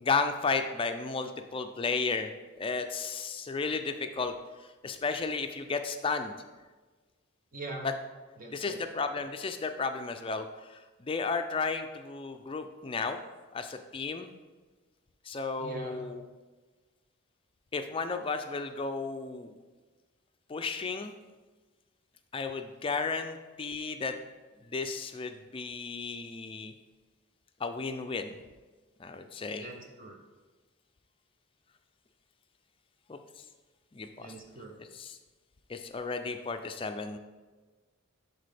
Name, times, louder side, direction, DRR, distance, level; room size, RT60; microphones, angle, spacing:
voice 1, 0.0-2.3 2.6-4.3 4.6-6.3 7.8-7.9 8.5-13.2 13.5-14.3 15.2-16.2 17.7-19.5 20.5-21.1 22.3-24.1 24.6-26.7 27.6-28.4 29.0-29.7 33.1-33.4 33.9-34.3 34.9-35.2 35.7-37.2, left 4 dB, 25° left, 7 dB, 0.4 m, -33 dB
voice 2, 7.5-7.9 8.4-8.8 15.6-16.0 29.6-30.2 34.2-34.8, right 2 dB, 40° right, 2 dB, 0.7 m, -42 dB
10.5 x 4.1 x 3.4 m, 1.3 s
head